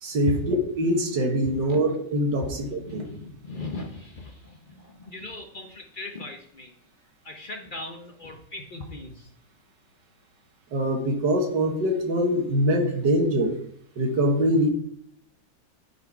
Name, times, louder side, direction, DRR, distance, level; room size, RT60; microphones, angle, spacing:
voice 1, 0.0-3.1 10.7-13.6 14.0-14.7, equal, 65° right, 2 dB, 1.9 m, -23 dB
voice 2, 2.8-6.8 7.2-9.3, left 2 dB, 70° left, 3 dB, 0.4 m, -39 dB
9.2 x 4.3 x 4.6 m, 0.67 s
omnidirectional pair, 2.1 m